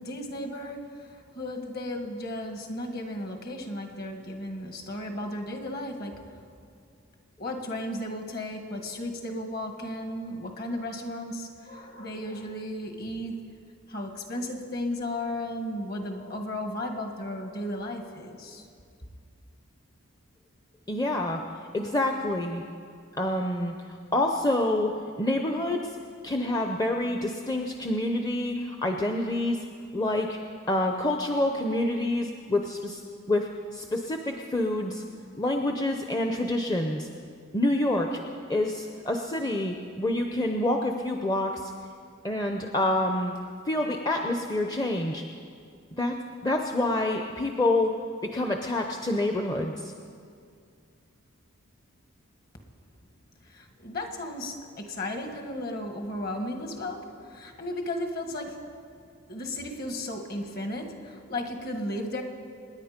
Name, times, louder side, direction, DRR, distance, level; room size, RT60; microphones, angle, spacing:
voice 1, 0.0-6.2 7.4-13.5 13.9-18.7 53.4-58.7 59.3-62.2, left 1 dB, 45° left, 4 dB, 1.7 m, -35 dB
voice 2, 20.9-21.5 21.7-22.6 23.2-26.0 26.2-29.6 29.9-30.4 30.7-33.0 33.3-35.0 35.4-37.1 37.5-38.2 38.5-41.7 42.2-43.3 43.7-45.2 46.0-49.9, left 1 dB, 15° left, 3 dB, 0.6 m, -27 dB
26.0 x 10.0 x 5.1 m, 2.3 s
head